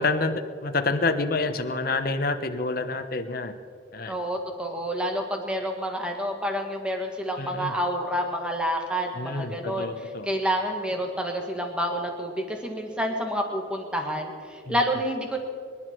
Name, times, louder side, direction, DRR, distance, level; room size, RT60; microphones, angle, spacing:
voice 1, 0.0-3.5 3.9-4.2 7.4-7.7 9.2-10.3 14.7-14.8, left 3 dB, 50° left, 7 dB, 1.0 m, -28 dB
voice 2, 4.1-15.4, equal, 5° right, 2 dB, 1.7 m, -29 dB
26.0 x 11.0 x 4.6 m, 2.3 s
head